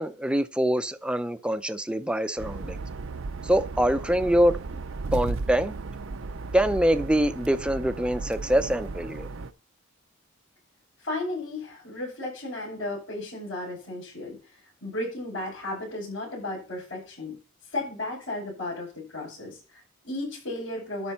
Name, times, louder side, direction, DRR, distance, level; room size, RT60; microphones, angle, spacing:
voice 1, 0.0-2.8 3.4-4.6 5.1-5.8 6.5-9.3, equal, 5° right, 0.5 m, -24 dB
sound 1, 2.4-9.5, right 3 dB, 75° right, 0.6 m, -35 dB
voice 2, 11.0-14.4 14.8-17.4 17.7-21.1, left 2 dB, 70° left, 6.7 m, -34 dB
12.0 x 5.3 x 5.6 m
head